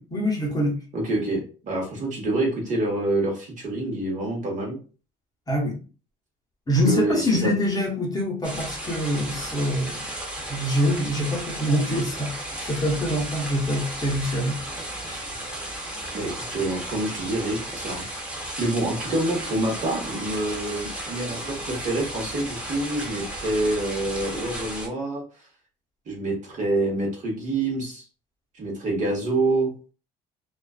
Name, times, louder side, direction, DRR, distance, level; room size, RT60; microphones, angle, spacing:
voice 1, 0.0-0.8 5.5-5.8 6.7-10.0 10.5-14.6 15.0-15.2, equal, 20° left, -1 dB, 0.8 m, -25 dB
voice 2, 0.9-4.8 6.8-7.5 16.1-18.0 18.6-25.2 26.1-28.0 28.6-29.7, right 2 dB, 45° right, -1 dB, 1.0 m, -27 dB
sound 1, 8.4-24.9, right 1 dB, 5° right, 0.7 m, -34 dB
2.4 x 2.3 x 2.3 m, 0.37 s
cardioid pair, 110°, 17 cm